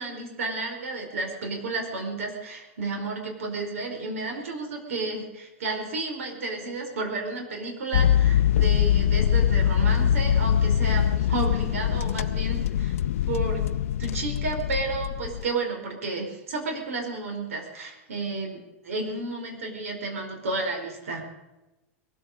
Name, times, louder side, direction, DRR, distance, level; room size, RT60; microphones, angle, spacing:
voice 1, 0.0-12.9 13.3-13.7 14.0-21.2, right 3 dB, 90° right, 3 dB, 4.8 m, -32 dB
sound 1, 7.9-15.5, left 10 dB, 85° left, 0.4 m, -23 dB
22.0 x 8.8 x 6.8 m, 1.0 s
supercardioid pair, 140°, 7 cm